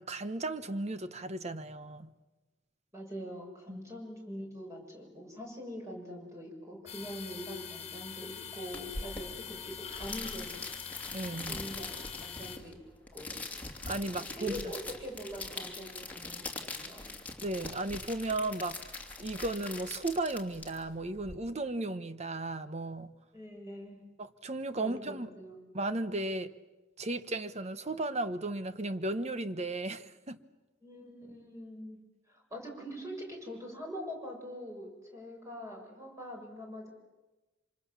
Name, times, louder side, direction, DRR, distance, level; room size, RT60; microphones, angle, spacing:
voice 1, 0.0-2.1 3.7-3.8 11.1-11.6 13.9-14.6 17.4-18.8 19.2-23.1 24.2-25.3 25.7-26.5 27.0-30.4, right 2 dB, 35° right, 1.1 m, -35 dB
voice 2, 2.9-10.6 11.5-11.9 12.2-12.7 13.1-13.4 14.4-17.2 23.3-24.0 24.8-25.5 30.8-32.0 32.3-36.9, equal, 15° right, 6.8 m, -43 dB
sound 1, 6.9-12.6, left 7 dB, 35° left, 1.6 m, -44 dB
sound 2, 8.7-21.3, left 3 dB, 10° left, 2.9 m, -42 dB
27.0 x 26.0 x 7.3 m
head